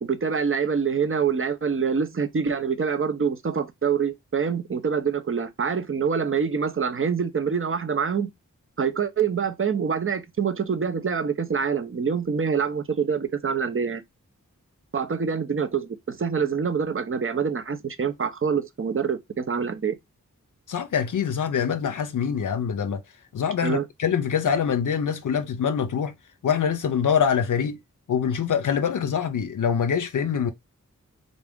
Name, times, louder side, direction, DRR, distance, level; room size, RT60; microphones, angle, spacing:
voice 1, 0.0-8.3 8.8-14.0 14.9-20.0 23.6-23.9, right 6 dB, 40° right, 0.6 m, -25 dB
voice 2, 20.7-23.0 23.3-26.1 26.4-27.8 28.1-30.5, left 7 dB, 75° left, 0.5 m, -24 dB
3.8 x 2.5 x 3.5 m
cardioid pair, 45°, 32 cm